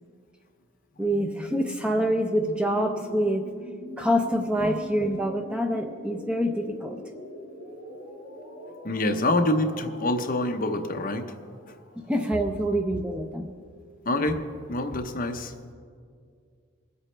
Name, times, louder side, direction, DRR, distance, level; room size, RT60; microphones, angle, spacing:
sound 1, 0.9-12.7, equal, 65° left, 2.6 m, -43 dB
voice 1, 1.0-3.5 4.0-7.0 12.1-13.5, equal, 5° right, 4 dB, 0.5 m, -26 dB
voice 2, 8.8-11.3 14.1-14.4 14.7-15.5, left 1 dB, 40° left, 5 dB, 0.8 m, -26 dB
22.5 x 8.2 x 3.3 m, 2.2 s
head